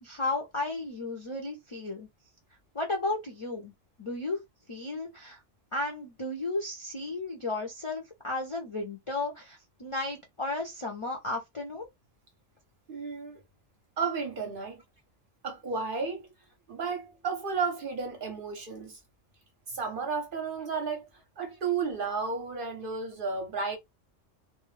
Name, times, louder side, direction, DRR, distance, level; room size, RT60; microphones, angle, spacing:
voice 1, 0.0-2.1 2.7-3.7 4.0-4.4 4.7-5.4 5.7-11.9, left 2 dB, 45° left, 0.4 m, -34 dB
voice 2, 12.9-13.4 14.0-14.8 15.4-16.3 16.7-19.0 19.7-21.1 21.4-23.8, right 5 dB, 55° right, 0.7 m, -33 dB
2.2 x 2.0 x 3.0 m
omnidirectional pair, 1.3 m